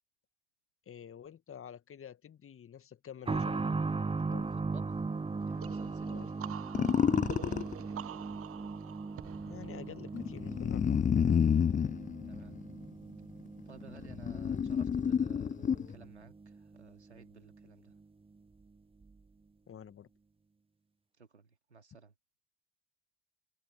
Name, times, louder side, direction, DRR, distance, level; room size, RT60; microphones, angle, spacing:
voice 1, 0.9-3.6 4.3-4.5 6.1-6.3 9.5-11.0 19.7-20.1, left 8 dB, 40° left, 2.1 m, -48 dB
sound 1, 3.3-17.7 18.0-18.1 19.0-19.1, right 4 dB, 15° right, 1.2 m, -39 dB
voice 2, 5.4-6.1 7.3-7.6 12.2-12.5 13.7-17.9 21.2-22.1, right 5 dB, 90° right, 3.4 m, -56 dB
sound 2, 5.6-11.2, right 11 dB, 45° right, 1.1 m, -48 dB
sound 3, 6.7-7.7 10.1-12.9 13.6-16.0, left 7 dB, 25° left, 0.6 m, -29 dB
figure-of-eight pair, 50°, 33 cm